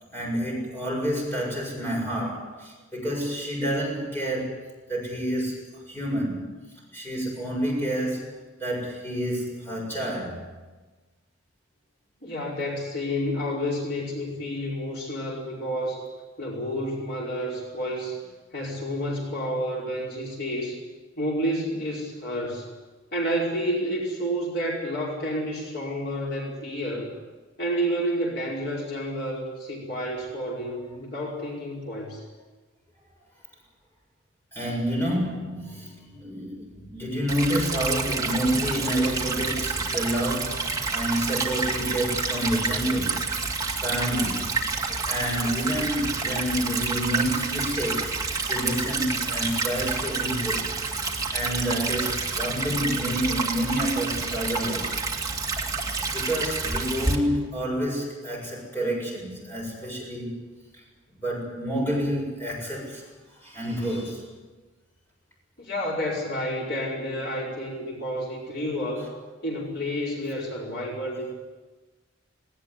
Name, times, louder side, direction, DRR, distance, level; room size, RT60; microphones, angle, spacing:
voice 1, 0.1-4.6 4.9-6.5 6.9-10.5 34.5-43.2 43.7-44.5 45.1-48.2 48.5-50.7 51.3-55.0 56.1-60.4 61.2-63.0 63.4-64.3, equal, 10° left, -2 dB, 7.5 m, -29 dB
voice 2, 12.2-16.0 16.4-18.2 18.5-20.8 21.2-22.7 23.1-27.1 27.6-32.2 65.6-69.1 69.4-71.3, equal, 55° left, -3 dB, 5.1 m, -30 dB
Stream / Trickle dribble, 37.3-57.2, right 4 dB, 20° right, 2.2 m, -28 dB
19.0 x 18.5 x 9.9 m, 1.3 s
head